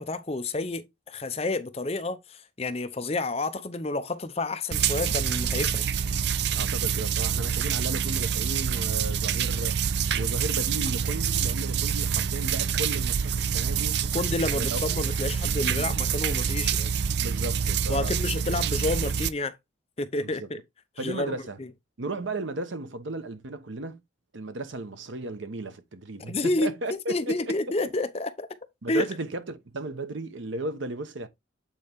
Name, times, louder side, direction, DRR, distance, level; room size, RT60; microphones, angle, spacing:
voice 1, 0.0-5.9 14.1-16.9 17.9-19.5 20.0-20.6 21.0-21.7 26.3-28.5 28.9-29.1, left 2 dB, 30° left, 0.7 m, -30 dB
sound 1, 4.7-19.3, right 7 dB, 55° right, 0.4 m, -27 dB
voice 2, 6.5-14.0 14.6-14.8 15.7-15.9 17.2-18.1 20.2-20.5 21.0-21.6 22.0-24.0 24.3-27.6 28.8-31.3, right 2 dB, 75° right, 1.0 m, -35 dB
8.4 x 4.2 x 3.5 m
head